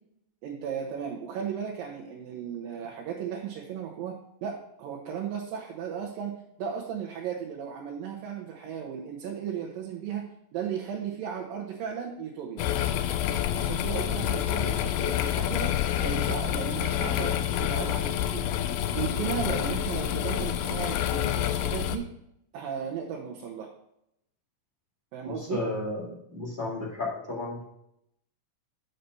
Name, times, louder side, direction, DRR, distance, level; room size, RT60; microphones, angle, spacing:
voice 1, 0.4-4.1 4.4-6.3 6.6-10.2 10.5-12.6 13.6-15.7 16.0-18.4 18.9-22.0 22.5-23.7 25.1-25.6, right 8 dB, 80° right, -1 dB, 2.7 m, -35 dB
sound 1, 12.6-22.0, left 11 dB, 80° left, 2.0 m, -28 dB
voice 2, 25.2-27.7, left 2 dB, 20° left, -5 dB, 1.3 m, -33 dB
6.8 x 5.9 x 5.3 m, 0.78 s
omnidirectional pair, 4.0 m